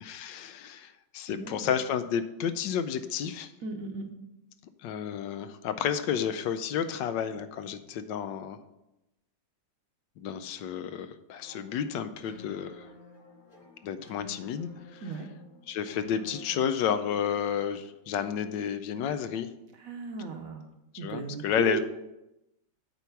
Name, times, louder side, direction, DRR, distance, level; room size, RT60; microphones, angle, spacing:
voice 1, 0.0-3.5 4.8-8.6 10.2-12.9 13.8-15.0 15.7-19.5 20.9-21.8, left 8 dB, 80° left, 10 dB, 1.2 m, -31 dB
voice 2, 1.3-1.7 3.6-4.1 15.0-15.3 19.8-20.6 21.0-21.8, right 5 dB, 55° right, 4 dB, 1.1 m, -36 dB
sound 1, 11.4-17.5, left 4 dB, 30° left, 1.1 m, -52 dB
7.9 x 4.6 x 7.0 m, 0.92 s
omnidirectional pair, 2.0 m